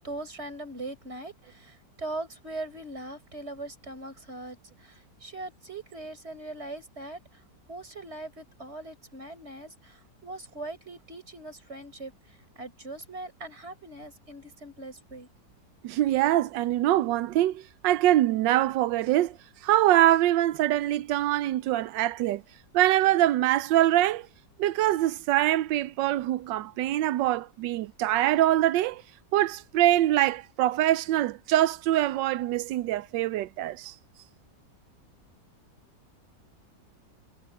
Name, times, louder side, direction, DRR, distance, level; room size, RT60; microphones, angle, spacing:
voice 1, 0.0-15.3, right 2 dB, 35° right, 5.3 m, -41 dB
voice 2, 15.8-19.4 19.6-22.4 22.7-24.3 24.6-29.0 29.3-33.9, right 14 dB, 90° right, 1.3 m, -24 dB
omnidirectional pair, 1.9 m